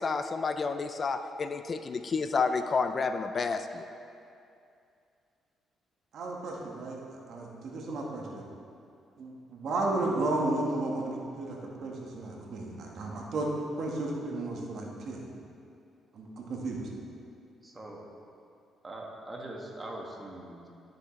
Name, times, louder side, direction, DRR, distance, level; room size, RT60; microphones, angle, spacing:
voice 1, 0.0-3.8, left 4 dB, 40° left, 9 dB, 0.4 m, -30 dB
voice 2, 6.1-7.0 7.3-8.4 9.2-15.2 16.1-16.9, right 2 dB, 65° right, -1 dB, 1.4 m, -33 dB
voice 3, 17.6-18.1 18.8-20.7, right 1 dB, 25° right, -1 dB, 1.5 m, -42 dB
12.5 x 6.6 x 3.2 m, 2.5 s
cardioid pair, 90°, 0 cm